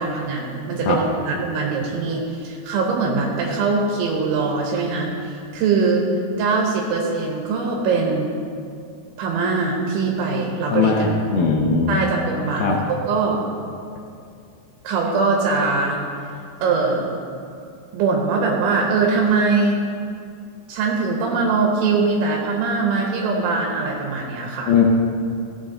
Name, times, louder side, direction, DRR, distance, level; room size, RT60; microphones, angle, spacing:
voice 1, 0.0-6.1 6.4-8.3 9.2-11.1 11.9-13.4 14.9-16.0 16.6-17.1 17.9-19.8 20.7-24.7, right 4 dB, 90° right, -1 dB, 3.5 m, -22 dB
voice 2, 10.7-11.9 12.6-12.8 24.7-24.8, left 5 dB, 80° left, 0 dB, 2.1 m, -19 dB
17.0 x 7.1 x 3.8 m, 2.4 s
omnidirectional pair, 5.2 m